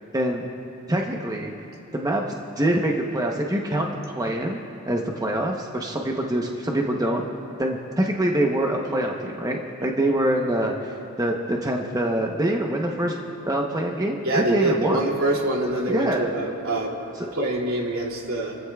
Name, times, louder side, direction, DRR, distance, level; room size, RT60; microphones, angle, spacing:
voice 1, 0.1-0.4 0.9-1.5 1.9-7.2 7.6-15.0 15.9-16.3, right 1 dB, 20° right, 0 dB, 0.9 m, -25 dB
voice 2, 14.2-17.0 17.3-18.6, right 1 dB, 80° right, -1 dB, 2.7 m, -25 dB
30.0 x 15.0 x 2.3 m, 2.9 s
head